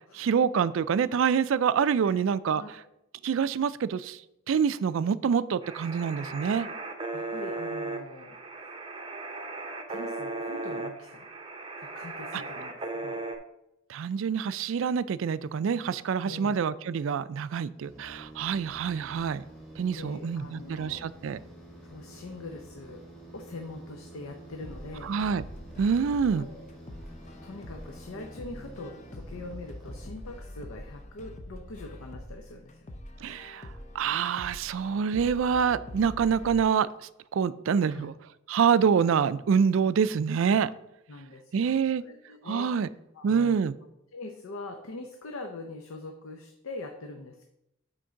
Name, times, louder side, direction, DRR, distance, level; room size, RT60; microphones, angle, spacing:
voice 1, 0.0-2.6 3.2-4.2 4.5-6.7 13.9-19.4 19.8-21.4 25.1-25.4 25.8-26.5 33.2-33.7 33.9-36.9 37.3-38.1 38.5-40.7 41.5-42.0 42.5-42.9 43.2-43.7, right 6 dB, 70° right, 16 dB, 0.3 m, -26 dB
voice 2, 2.5-2.8 7.1-8.7 9.9-11.3 11.8-13.2 16.2-16.6 19.9-21.1 21.8-23.1 23.3-25.2 26.3-26.6 27.4-32.9 37.8-38.1 41.1-43.6 44.1-47.4, left 2 dB, 85° left, 4 dB, 0.7 m, -43 dB
sound 1, 5.6-13.4, right 2 dB, 25° right, 0.8 m, -37 dB
sound 2, 17.8-30.6, right 1 dB, ahead, 2.6 m, -48 dB
sound 3, 24.6-36.6, left 1 dB, 35° left, 0.6 m, -45 dB
6.3 x 4.5 x 5.7 m, 0.83 s
head